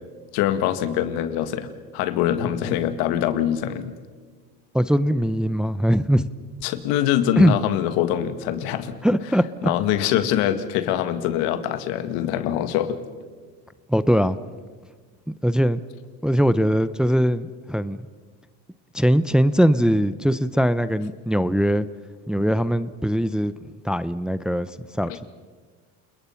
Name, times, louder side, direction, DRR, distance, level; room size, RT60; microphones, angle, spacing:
voice 1, 0.3-4.0 6.6-9.0 9.6-13.0 25.1-25.2, left 11 dB, 80° left, 11 dB, 1.9 m, -24 dB
voice 2, 4.7-6.3 7.4-7.6 9.0-9.4 13.9-14.4 15.4-15.8 16.2-18.0 18.9-21.9 22.3-23.5 23.8-25.3, equal, ahead, 14 dB, 0.6 m, -21 dB
29.5 x 20.5 x 5.8 m, 1.5 s
supercardioid pair, 110°, 37 cm